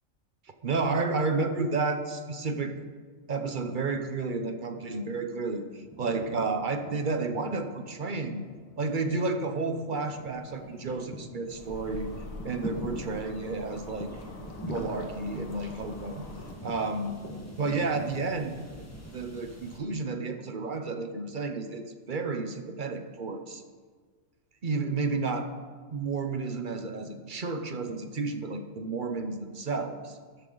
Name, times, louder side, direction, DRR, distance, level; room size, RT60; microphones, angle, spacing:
voice 1, 0.6-2.7 3.3-8.4 8.8-12.1 12.4-14.1 14.6-16.2 16.6-17.2 17.6-18.5 19.1-23.6 24.6-25.5 25.9-30.2, right 3 dB, 45° right, 7 dB, 0.9 m, -31 dB
sound 1, 4.9-5.3 5.5-19.8, equal, 10° left, 1.5 m, -44 dB
sound 2, 11.5-16.5, left 2 dB, 80° left, 1.7 m, -44 dB
12.5 x 12.5 x 3.9 m, 1.5 s
omnidirectional pair, 1.4 m